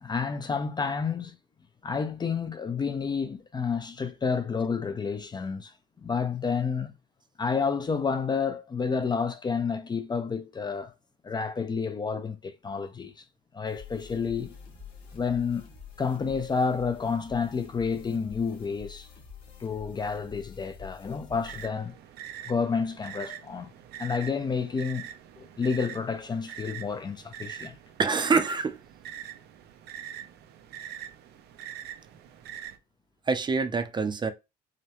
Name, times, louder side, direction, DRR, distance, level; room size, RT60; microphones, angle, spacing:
voice 1, 0.0-1.4 1.8-5.7 6.0-6.9 7.4-10.9 11.2-13.2 13.5-14.5 15.1-15.7 16.0-19.1 19.6-22.0 22.5-23.7 24.0-25.1 25.4-27.8, left 5 dB, 25° left, 0.5 m, -30 dB
sound 1, 13.7-21.7, left 7 dB, 90° left, 1.8 m, -47 dB
sound 2, 21.4-32.8, right 10 dB, 75° right, 0.6 m, -43 dB
voice 2, 28.0-28.8 33.3-34.3, right 4 dB, 25° right, 0.6 m, -25 dB
4.9 x 2.2 x 3.0 m
cardioid pair, 110°, 17 cm